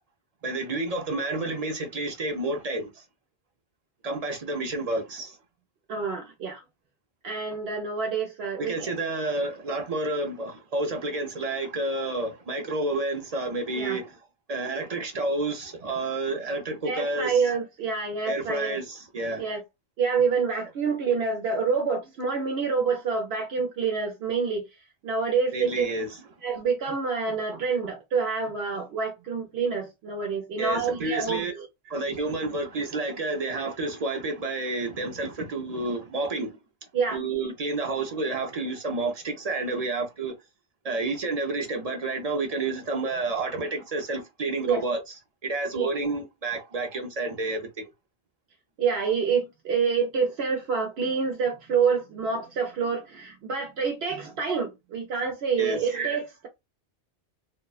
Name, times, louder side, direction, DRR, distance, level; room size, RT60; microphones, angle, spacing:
voice 1, 0.4-3.0 4.0-5.4 8.6-14.2 14.5-17.4 18.3-19.5 25.5-26.2 30.6-31.5 31.9-36.6 37.1-40.3 40.8-47.9 55.6-55.9, right 2 dB, 50° right, 0.5 m, -30 dB
voice 2, 5.9-6.6 7.2-8.9 13.8-14.0 16.9-18.8 19.4-19.6 20.0-24.7 25.0-25.9 26.4-31.7 36.9-37.2 44.7-44.8 45.7-45.9 48.8-56.5, right 5 dB, 70° right, 0.9 m, -27 dB
2.6 x 2.1 x 2.3 m
omnidirectional pair, 1.1 m